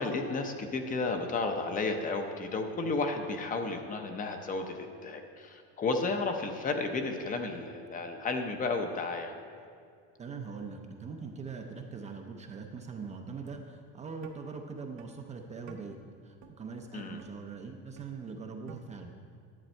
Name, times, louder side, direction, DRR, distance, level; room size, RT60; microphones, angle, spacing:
voice 1, 0.0-9.3 16.9-17.2, left 3 dB, 25° left, 5 dB, 0.7 m, -33 dB
voice 2, 10.2-16.0 16.2-19.1, right 4 dB, 20° right, 3 dB, 0.5 m, -42 dB
sound 1, 13.4-13.6 14.2-14.3 15.0-15.1 15.7-15.8 16.4-16.5 17.2-17.3 18.0-18.1 18.7-18.8, right 11 dB, 80° right, 0.9 m, -48 dB
11.0 x 7.4 x 4.3 m, 2.3 s
cardioid pair, 140°, 31 cm